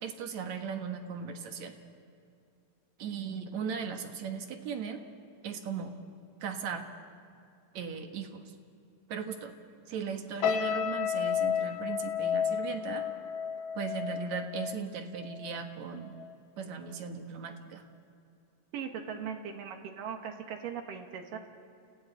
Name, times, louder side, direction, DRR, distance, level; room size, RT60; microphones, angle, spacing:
voice 1, 0.0-1.8 3.0-5.0 5.4-5.9 6.4-6.9 7.7-8.5 9.1-9.5 9.9-13.0 13.7-16.1 16.6-17.8, right 6 dB, 60° right, 5 dB, 2.5 m, -37 dB
sound 1, 10.4-15.7 16.0-16.3, left 8 dB, 80° left, 2.6 m, -32 dB
voice 2, 18.7-21.4, right 7 dB, 80° right, 4 dB, 3.2 m, -39 dB
29.5 x 29.0 x 4.1 m, 2.6 s
omnidirectional pair, 3.9 m